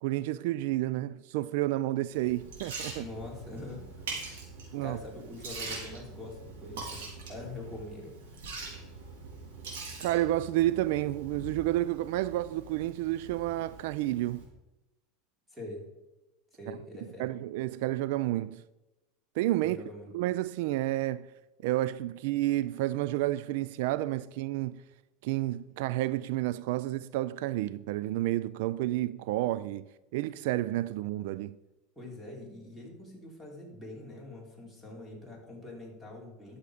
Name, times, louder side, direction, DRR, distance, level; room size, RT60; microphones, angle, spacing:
voice 1, 0.0-3.1 4.7-5.0 10.0-14.4 16.7-16.8 17.2-18.6 19.4-19.8 20.1-21.3 21.6-24.8 25.2-31.6, right 15 dB, 70° right, 0.3 m, -30 dB
Liquid, 2.1-14.4, right 3 dB, 90° right, 3.5 m, -43 dB
voice 2, 3.0-4.2 4.8-8.4 15.5-15.8 16.5-17.3 19.6-20.1 32.0-36.6, left 2 dB, 5° right, 3.6 m, -44 dB
12.5 x 7.1 x 5.0 m
supercardioid pair, 135°, 0 cm